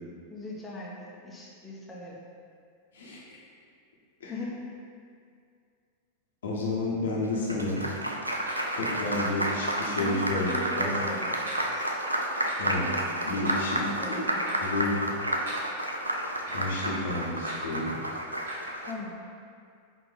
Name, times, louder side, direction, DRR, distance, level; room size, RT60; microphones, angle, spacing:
voice 1, 0.3-2.2 4.3-4.5 10.0-10.2 10.5-11.8 13.4-14.6 18.9-19.1, left 2 dB, 10° left, -5 dB, 0.6 m, -39 dB
voice 2, 2.9-3.4 4.2-4.3 6.4-7.8 8.7-10.9 12.6-12.9 13.2-13.8 14.1-14.2 14.6-15.1 16.5-17.9, left 2 dB, 65° left, -5 dB, 0.8 m, -31 dB
Applause, 7.2-18.9, right 1 dB, 85° right, 0.3 m, -31 dB
sound 1, 8.5-8.6 9.5-9.6 10.5-10.6 11.5-11.6 12.5-12.6 13.5-13.6 14.5-14.6 15.5-15.6 16.5-16.6 17.5-17.6 18.5-18.6, right 2 dB, 65° right, 0.8 m, -39 dB
4.5 x 2.5 x 3.3 m, 2.3 s
figure-of-eight pair, 90°, 0 cm